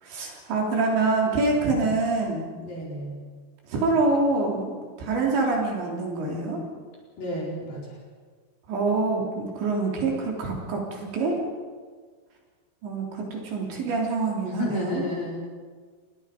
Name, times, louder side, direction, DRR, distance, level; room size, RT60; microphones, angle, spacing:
voice 1, 0.0-2.5 3.7-6.6 8.7-11.4 12.8-15.0, right 3 dB, 60° right, -1 dB, 5.4 m, -26 dB
voice 2, 2.6-3.2 7.2-8.0 14.4-15.5, left 2 dB, 45° left, -3 dB, 6.0 m, -32 dB
29.0 x 20.0 x 5.2 m, 1.5 s
omnidirectional pair, 5.9 m